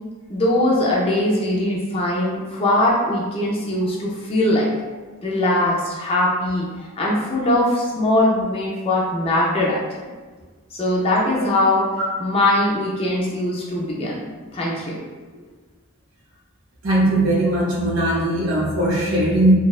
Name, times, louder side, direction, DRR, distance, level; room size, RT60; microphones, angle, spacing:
voice 1, 0.3-4.7 5.2-9.8 10.7-11.9 12.2-14.2 14.5-15.0, left 1 dB, 25° left, -4 dB, 0.3 m, -21 dB
voice 2, 16.8-19.5, right 1 dB, 70° right, -3 dB, 0.6 m, -19 dB
2.6 x 2.1 x 2.3 m, 1.4 s
head